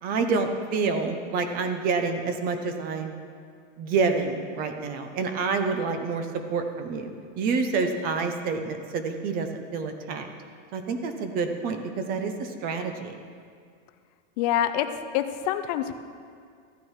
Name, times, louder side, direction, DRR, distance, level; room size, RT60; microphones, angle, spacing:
voice 1, 0.0-3.1 3.8-10.3 10.7-13.2, right 4 dB, 25° right, 7 dB, 0.7 m, -28 dB
voice 2, 14.4-14.9 15.1-15.9, left 11 dB, 35° left, 9 dB, 0.5 m, -25 dB
14.0 x 9.2 x 4.8 m, 2.2 s
supercardioid pair, 165°, 38 cm